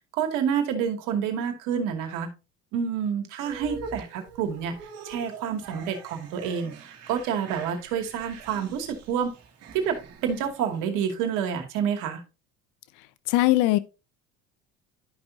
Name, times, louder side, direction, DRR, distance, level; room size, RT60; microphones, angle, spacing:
voice 1, 0.1-2.3 2.7-9.3 9.7-10.0 10.2-12.2, right 7 dB, 75° right, 2.5 m, -28 dB
sound 1, 3.4-10.8, right 4 dB, 50° right, 2.6 m, -44 dB
voice 2, 13.3-13.8, left 17 dB, 70° left, 0.7 m, -20 dB
12.0 x 6.0 x 2.7 m
supercardioid pair, 85°, 32 cm